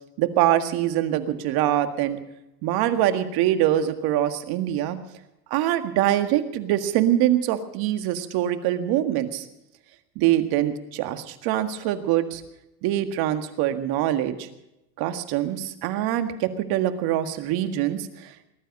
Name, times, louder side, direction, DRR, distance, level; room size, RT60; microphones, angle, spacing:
voice 1, 0.2-2.2 2.6-5.0 5.5-9.5 10.2-12.4 12.8-14.5 15.0-18.5, right 12 dB, 45° right, 9 dB, 1.9 m, -24 dB
20.5 x 12.5 x 5.4 m, 0.89 s
hypercardioid pair, 115°, 50 cm